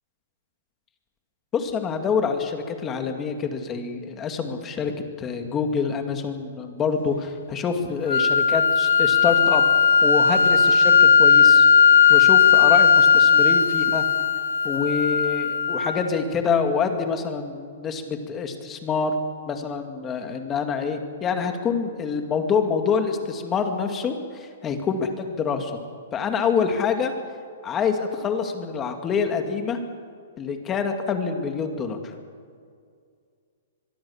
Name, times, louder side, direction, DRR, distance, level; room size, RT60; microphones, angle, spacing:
voice 1, 1.5-4.9 5.2-9.7 10.0-11.7 12.1-14.0 14.6-19.1 19.5-25.8 26.1-27.1 27.6-29.8 30.4-32.0, left 6 dB, 15° left, 5 dB, 2.2 m, -26 dB
sound 1, 8.1-16.1, left 6 dB, 90° left, 1.3 m, -17 dB
23.5 x 23.0 x 7.2 m, 2.2 s
hypercardioid pair, 170°, 0 cm